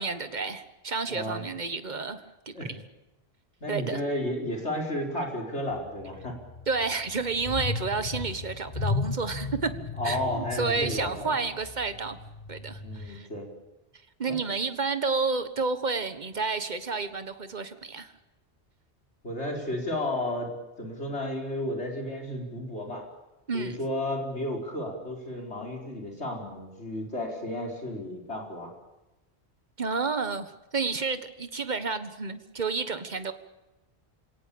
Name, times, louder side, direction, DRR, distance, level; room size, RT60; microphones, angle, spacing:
voice 1, 0.0-2.5 3.7-4.0 6.7-9.7 10.0-12.2 12.5-13.3 14.2-18.1 23.5-23.8 29.8-33.3, right 4 dB, 40° right, 11 dB, 1.5 m, -30 dB
voice 2, 1.1-1.5 2.5-2.8 3.6-6.4 10.0-11.3 12.8-13.5 14.3-14.5 19.2-20.5 20.8-23.0 23.5-28.7, left 1 dB, 85° left, 0 dB, 5.0 m, -33 dB
sound 1, 5.7-13.2, left 4 dB, 40° left, 1.4 m, -35 dB
28.0 x 17.5 x 8.7 m, 1.0 s
omnidirectional pair, 1.1 m